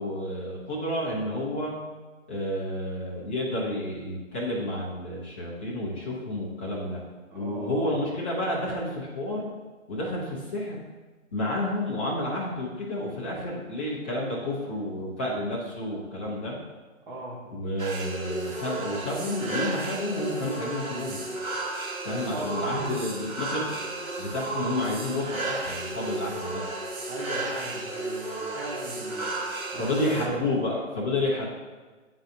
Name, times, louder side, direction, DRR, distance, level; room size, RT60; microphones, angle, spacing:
voice 1, 0.0-1.7 2.3-7.0 7.3-9.5 9.9-10.7 11.3-16.6 17.5-21.2 22.0-23.8 24.2-26.6 29.8-31.5, left 1 dB, 10° left, -7 dB, 0.5 m, -30 dB
voice 2, 7.3-8.1 17.1-17.4 22.2-23.1 27.1-29.4 29.7-29.9 30.2-30.3, right 2 dB, 40° right, -5 dB, 1.2 m, -39 dB
sound 1, 17.8-30.3, right 2 dB, 85° right, 1.4 m, -33 dB
10.5 x 3.9 x 2.6 m, 1.3 s
figure-of-eight pair, 145°, 40 cm